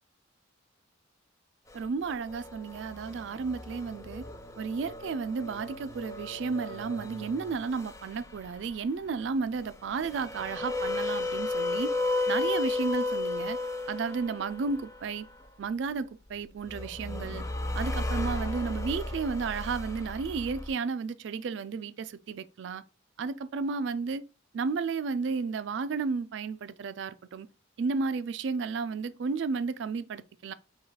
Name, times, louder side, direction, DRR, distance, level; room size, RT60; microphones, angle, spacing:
sound 1, 1.7-8.7 9.7-15.4 16.6-20.7, left 2 dB, 15° left, 0.4 m, -34 dB
voice 1, 1.7-4.3 4.6-11.9 12.3-13.6 13.9-15.3 15.6-17.4 17.7-22.8 23.2-24.2 24.5-27.5 27.8-30.5, right 4 dB, 65° right, 0.3 m, -33 dB
4.8 x 2.3 x 3.8 m
head